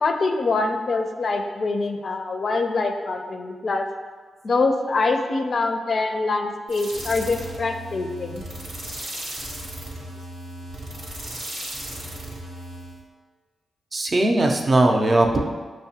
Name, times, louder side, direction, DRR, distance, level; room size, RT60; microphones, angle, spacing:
voice 1, 0.0-3.9 4.4-8.4, left 3 dB, 60° left, 5 dB, 0.4 m, -24 dB
sound 1, 6.7-13.0, right 1 dB, 85° right, 0.9 m, -35 dB
voice 2, 13.9-15.4, right 2 dB, 45° right, 2 dB, 0.5 m, -19 dB
6.1 x 2.1 x 2.8 m, 1.4 s
supercardioid pair, 45°, 0 cm